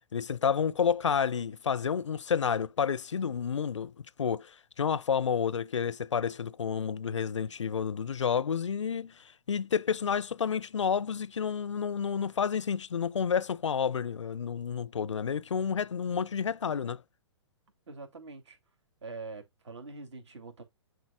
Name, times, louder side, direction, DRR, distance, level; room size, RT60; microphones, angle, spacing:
voice 1, 0.1-3.9 4.2-17.0, left 7 dB, 80° left, 0.5 m, -30 dB
voice 2, 17.9-18.6 19.0-20.6, right 3 dB, 70° right, 3.0 m, -44 dB
11.0 x 4.1 x 2.4 m
figure-of-eight pair, 125°, 15 cm